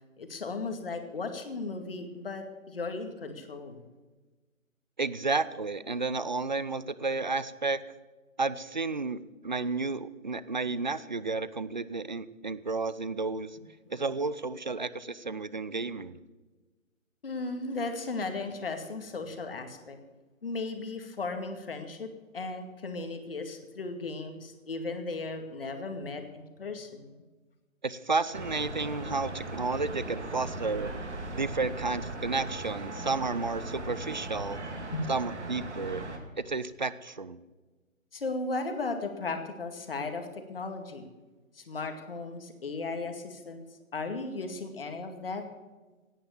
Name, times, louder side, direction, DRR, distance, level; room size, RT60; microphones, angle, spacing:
voice 1, 0.2-3.8 17.2-20.0 20.4-22.1 22.3-27.1 34.9-35.1 38.1-41.1 41.5-43.6 43.9-45.4, left 3 dB, 45° left, 6 dB, 2.2 m, -36 dB
voice 2, 5.0-7.8 8.4-13.6 13.9-16.2 27.8-30.9 31.3-34.6 35.1-36.0 36.4-37.4, right 3 dB, 35° right, 17 dB, 0.5 m, -32 dB
sound 1, 28.3-36.2, right 2 dB, 60° right, 2.6 m, -38 dB
17.0 x 9.9 x 7.1 m, 1.3 s
figure-of-eight pair, 150°, 40 cm